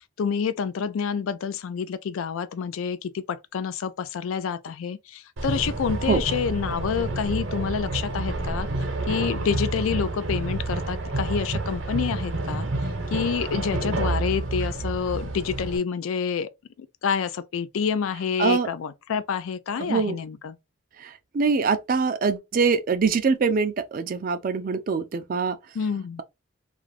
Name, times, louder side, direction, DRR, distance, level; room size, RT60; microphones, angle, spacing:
voice 1, 0.2-8.7 9.1-12.7 13.1-16.5 16.8-20.5 25.7-26.2, left 6 dB, 75° left, 0.3 m, -28 dB
sound 1, 5.4-15.8, right 2 dB, 65° right, 0.7 m, -29 dB
voice 2, 19.8-20.2 21.0-25.6, right 5 dB, 40° right, 0.3 m, -24 dB
2.5 x 2.4 x 3.1 m
head